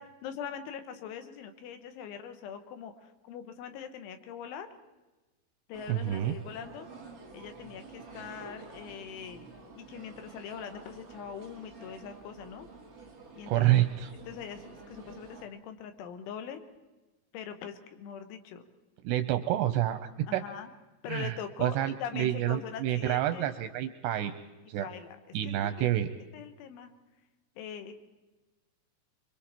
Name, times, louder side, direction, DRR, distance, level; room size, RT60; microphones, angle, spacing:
voice 1, 0.0-4.7 5.7-6.9 7.3-9.5 9.7-12.7 13.3-13.7 14.3-16.6 17.3-18.6 20.3-20.7 21.0-23.6 24.8-25.2 25.4-26.0 26.3-26.9 27.6-28.0, left 8 dB, 80° left, 8 dB, 3.7 m, -42 dB
sound 1, 5.7-15.4, right 4 dB, 40° right, 1.2 m, -49 dB
voice 2, 5.9-6.3 13.5-14.1 19.0-20.4 21.1-24.3 24.7-24.9 25.3-26.1, right 13 dB, 80° right, 9 dB, 2.5 m, -28 dB
25.0 x 23.5 x 4.4 m, 1.1 s
omnidirectional pair, 5.6 m